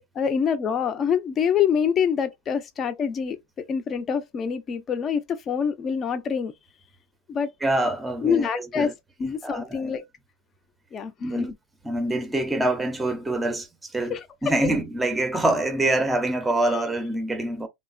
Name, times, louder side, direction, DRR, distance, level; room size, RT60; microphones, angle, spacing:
voice 1, 0.2-6.5 7.3-7.5 8.2-8.9 9.2-10.0 10.9-11.6 14.1-14.7, left 7 dB, 30° left, 0.6 m, -26 dB
voice 2, 7.6-8.5 8.8-8.9 9.4-9.9 11.2-11.5 11.8-14.2 14.4-17.7, right 1 dB, 10° right, 0.6 m, -25 dB
2.9 x 2.0 x 2.4 m
supercardioid pair, 125°, 0 cm